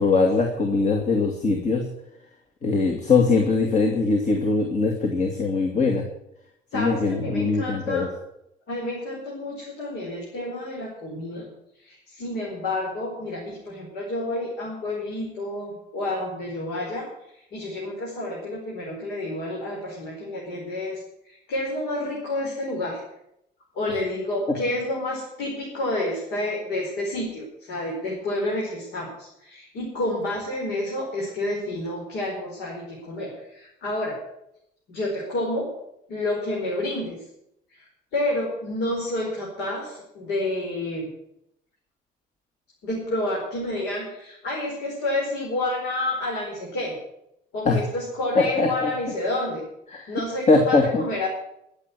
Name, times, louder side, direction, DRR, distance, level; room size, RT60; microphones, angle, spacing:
voice 1, 0.0-1.8 2.6-6.0 6.7-8.1 47.6-47.8 48.3-48.9 49.9-50.1 50.5-51.0, left 3 dB, 45° left, 3 dB, 2.4 m, -21 dB
voice 2, 6.7-8.1 8.7-11.5 11.8-17.1 17.3-23.0 23.7-34.2 34.9-35.7 36.1-37.2 37.7-41.1 42.8-47.0 47.5-49.6 50.1-51.3, left 1 dB, 85° left, -3 dB, 4.8 m, -29 dB
14.0 x 7.7 x 9.6 m, 0.81 s
cardioid pair, 110°, 17 cm